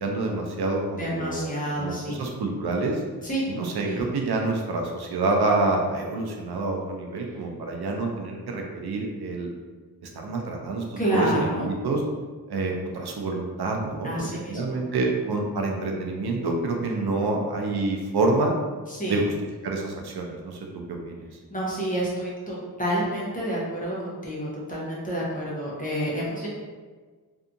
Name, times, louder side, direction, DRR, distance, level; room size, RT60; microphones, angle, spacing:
voice 1, 0.0-3.0 3.5-9.5 10.1-12.0 12.5-18.5 19.1-19.2 19.6-20.6 20.9-21.3, right 3 dB, 75° right, 1 dB, 0.5 m, -27 dB
voice 2, 1.0-2.2 3.2-3.4 3.9-4.0 11.0-11.7 14.0-14.8 18.9-19.2 21.5-26.5, right 1 dB, 20° left, -6 dB, 0.7 m, -29 dB
2.7 x 2.3 x 2.5 m, 1.4 s
wide cardioid pair, 95°, 39 cm